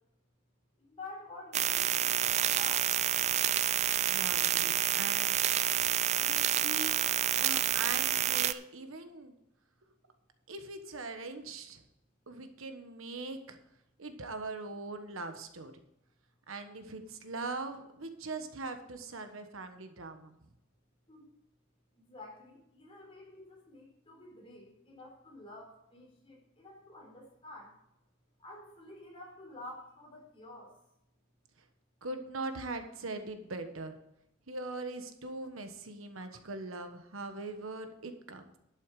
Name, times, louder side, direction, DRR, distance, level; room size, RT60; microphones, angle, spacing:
voice 1, 0.8-2.2 2.5-2.9 21.1-21.3 22.0-27.7 28.4-30.7, left 2 dB, 30° left, -1 dB, 4.0 m, -49 dB
sound 1, 1.5-8.5, right 11 dB, 35° right, 0.4 m, -28 dB
voice 2, 4.1-5.4 6.2-7.0 7.4-9.4 10.5-11.8 12.3-13.6 14.0-15.7 16.5-20.4 32.0-33.9 34.5-38.6, right 3 dB, 85° right, 7 dB, 1.3 m, -41 dB
11.5 x 8.3 x 4.9 m, 0.83 s
head